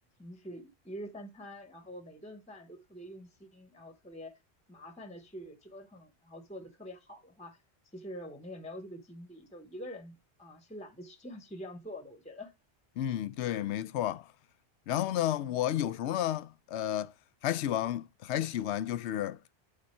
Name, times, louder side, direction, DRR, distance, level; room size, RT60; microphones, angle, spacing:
voice 1, 0.2-4.3 4.7-7.6 7.9-12.5, equal, 5° left, 0.9 m, -46 dB
voice 2, 13.0-14.3 14.9-17.1 17.4-19.4, left 12 dB, 80° left, 0.9 m, -32 dB
9.0 x 4.0 x 4.4 m
omnidirectional pair, 1.1 m